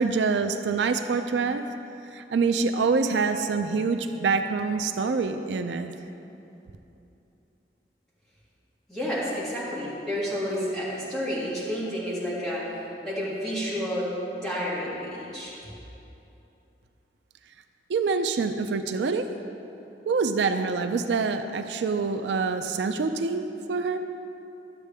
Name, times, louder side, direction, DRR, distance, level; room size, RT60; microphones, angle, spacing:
voice 1, 0.0-1.6 2.1-5.9 17.9-19.3 20.1-24.0, right 4 dB, 85° right, 8 dB, 0.4 m, -26 dB
voice 2, 8.9-14.1 14.3-15.5, equal, 5° left, -10 dB, 2.2 m, -30 dB
12.0 x 7.4 x 3.4 m, 2.9 s
head